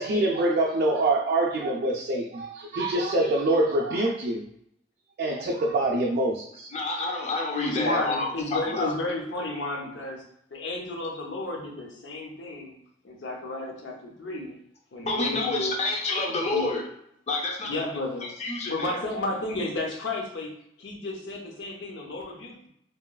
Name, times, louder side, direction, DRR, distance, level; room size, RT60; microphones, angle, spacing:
voice 1, 0.0-4.5 5.2-6.7, right 2 dB, 55° right, -2 dB, 0.3 m, -25 dB
voice 2, 6.7-8.9 15.0-16.8 17.3-17.9 18.2-19.0, left 3 dB, 35° left, -1 dB, 0.5 m, -28 dB
voice 3, 7.6-10.2 10.5-12.7 13.0-14.6 14.9-15.8 16.5-16.7 17.6-18.3 18.7-22.7, left 2 dB, 80° left, 0 dB, 0.6 m, -32 dB
2.9 x 2.3 x 2.2 m, 0.72 s
head